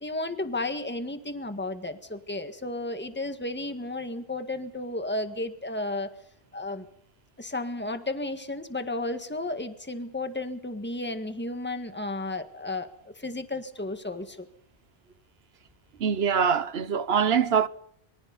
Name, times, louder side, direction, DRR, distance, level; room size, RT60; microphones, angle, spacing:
voice 1, 0.0-6.1 6.5-6.9 7.4-14.5, left 2 dB, 10° left, 1.7 m, -33 dB
voice 2, 16.0-17.7, right 7 dB, 80° right, 1.2 m, -23 dB
26.0 x 24.5 x 4.1 m
omnidirectional pair, 1.0 m